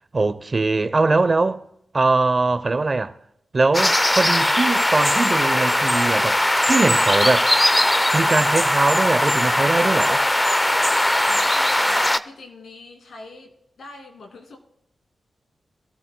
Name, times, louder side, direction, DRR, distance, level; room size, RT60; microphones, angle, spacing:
voice 1, 0.1-1.6 1.9-3.1 3.5-6.4 6.7-7.5 8.1-10.3, right 3 dB, 45° right, 0.8 m, -21 dB
sound 1, 3.7-12.2, left 1 dB, 15° left, 0.5 m, -19 dB
voice 2, 11.3-14.6, left 2 dB, 75° left, 2.7 m, -41 dB
23.5 x 13.0 x 2.3 m
cardioid pair, 50°, 0 cm